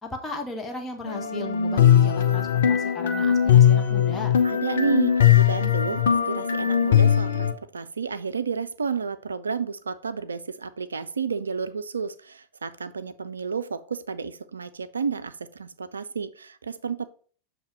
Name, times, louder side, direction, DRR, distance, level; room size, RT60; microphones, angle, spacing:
voice 1, 0.0-4.3, left 3 dB, 15° left, 2 dB, 0.9 m, -36 dB
sound 1, 1.1-7.5, left 9 dB, 60° left, 0.7 m, -20 dB
voice 2, 4.4-17.1, right 5 dB, 75° right, 14 dB, 0.3 m, -31 dB
7.1 x 2.8 x 5.2 m, 0.43 s
figure-of-eight pair, 90°, 0 cm